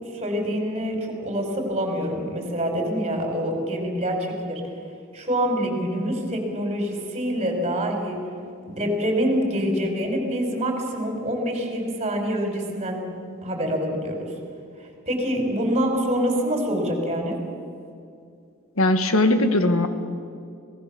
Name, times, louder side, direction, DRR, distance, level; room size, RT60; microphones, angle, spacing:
voice 1, 0.1-4.6 5.1-8.2 8.7-13.0 13.4-14.3 15.1-17.3, equal, 30° right, 2 dB, 4.9 m, -26 dB
voice 2, 18.8-19.9, left 1 dB, 70° left, 8 dB, 1.8 m, -19 dB
26.0 x 18.5 x 7.0 m, 2.4 s
head